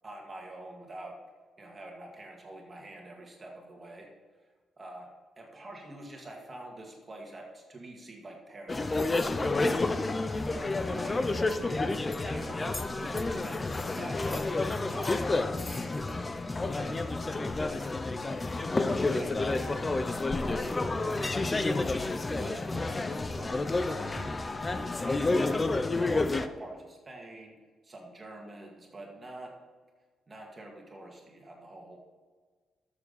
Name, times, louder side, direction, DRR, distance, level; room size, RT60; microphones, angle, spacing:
voice 1, 0.0-1.2 1.6-4.1 4.8-5.1 5.4-9.4 10.5-11.9 12.2-18.0 18.5-19.7 20.4-21.5 22.2-27.6 27.8-29.5 30.3-32.0, right 1 dB, 25° right, 0 dB, 2.2 m, -46 dB
sound 1, 8.7-26.5, left 2 dB, 20° left, 0.6 m, -30 dB
12.5 x 7.2 x 4.2 m, 1.4 s
cardioid pair, 130°, 0 cm